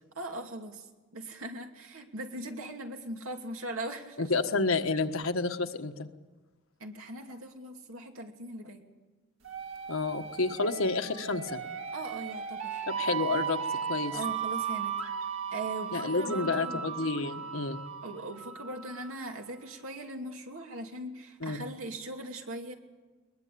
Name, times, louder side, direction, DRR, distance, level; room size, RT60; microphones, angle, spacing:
voice 1, 0.1-0.9 1.1-4.3 6.8-8.8 11.9-12.9 14.1-15.0 15.5-16.8 18.0-22.7, right 1 dB, 90° right, 3 dB, 2.7 m, -40 dB
voice 2, 4.2-6.1 9.9-11.6 13.0-13.6 13.9-14.2 15.9-17.8 21.4-21.7, left 3 dB, 80° left, 6 dB, 1.4 m, -30 dB
sound 1, 9.4-19.1, right 7 dB, 70° right, 1.8 m, -36 dB
21.5 x 21.0 x 8.6 m, 1.2 s
head